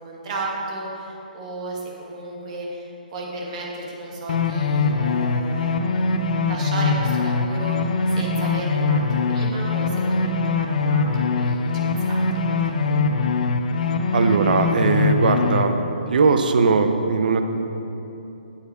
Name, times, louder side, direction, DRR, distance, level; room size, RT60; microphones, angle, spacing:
voice 1, 0.0-13.1, right 2 dB, 45° right, -2 dB, 2.1 m, -34 dB
sound 1, 4.3-15.6, left 3 dB, 55° left, 0.6 m, -22 dB
voice 2, 14.1-15.8 16.1-17.4, right 4 dB, 65° right, 7 dB, 0.8 m, -19 dB
8.4 x 8.0 x 4.9 m, 3.0 s
hypercardioid pair, 140°, 5 cm